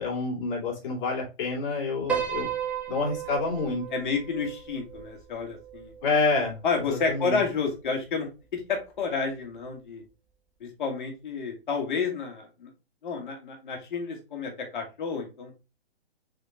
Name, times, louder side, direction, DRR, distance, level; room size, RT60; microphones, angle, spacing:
voice 1, 0.0-2.5 2.9-3.8 6.0-6.6 6.9-7.4, left 3 dB, 35° left, -3 dB, 2.5 m, -28 dB
Piano, 2.1-6.5, right 8 dB, 5° right, 0.6 m, -34 dB
voice 2, 3.9-5.9 6.6-10.0 10.6-12.7 13.0-15.5, left 5 dB, 50° left, 3 dB, 1.6 m, -30 dB
4.9 x 3.8 x 2.8 m, 0.29 s
hypercardioid pair, 145°, 30 cm